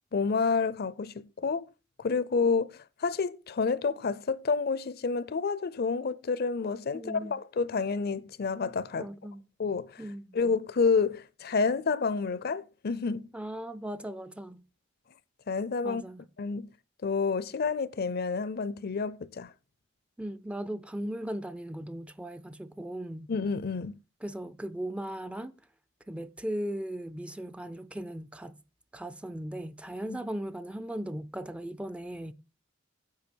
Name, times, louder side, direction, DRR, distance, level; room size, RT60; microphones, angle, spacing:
voice 1, 0.1-1.7 2.0-9.1 9.6-10.0 10.3-13.3 15.5-16.0 16.4-16.7 17.0-19.5 23.3-24.0, left 4 dB, 50° left, 0.5 m, -29 dB
voice 2, 6.9-7.3 9.0-9.5 10.0-10.4 13.3-14.6 15.8-16.2 20.2-23.3 24.2-25.5 26.1-28.6 28.9-32.3, right 1 dB, 5° right, 0.4 m, -38 dB
10.5 x 7.3 x 4.5 m
head